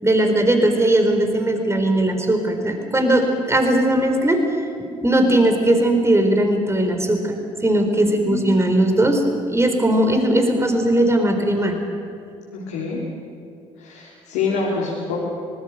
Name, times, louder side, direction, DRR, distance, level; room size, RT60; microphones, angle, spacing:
voice 1, 0.0-4.4 5.0-11.8, right 1 dB, 15° right, 5 dB, 4.2 m, -18 dB
voice 2, 8.0-8.6 12.5-13.0 13.8-15.2, left 4 dB, 70° left, -4 dB, 3.5 m, -26 dB
25.5 x 19.0 x 6.6 m, 2.4 s
hypercardioid pair, 50°, 17 cm